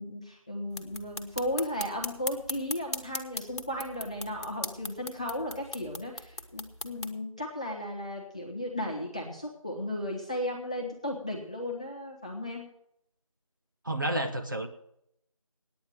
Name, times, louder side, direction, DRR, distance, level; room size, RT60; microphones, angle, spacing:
voice 1, 0.0-12.7, left 1 dB, 10° left, -3 dB, 1.0 m, -35 dB
sound 1, 0.7-7.1, left 2 dB, 50° left, 1.4 m, -39 dB
voice 2, 13.8-14.7, right 1 dB, 35° right, 5 dB, 0.9 m, -30 dB
9.4 x 9.3 x 9.3 m, 0.75 s
figure-of-eight pair, 175°, 18 cm